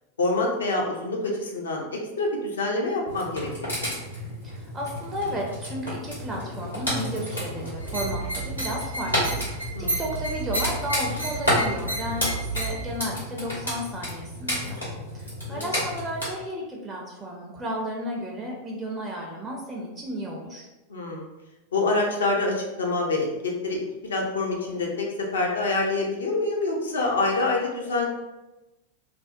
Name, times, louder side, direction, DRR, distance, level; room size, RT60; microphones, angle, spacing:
voice 1, 0.2-3.9 9.7-10.0 15.5-15.7 20.9-21.3 21.7-25.1 25.3-28.1, left 2 dB, 70° left, -1 dB, 0.5 m, -26 dB
sound 1, 3.1-16.3, left 1 dB, 90° left, 1.1 m, -31 dB
voice 2, 4.4-14.8 15.1-20.7, equal, 15° right, -2 dB, 0.4 m, -33 dB
sound 2, 7.8-12.9, right 2 dB, 80° right, 0.4 m, -31 dB
2.5 x 2.1 x 2.4 m, 1.0 s
figure-of-eight pair, 90°, 0 cm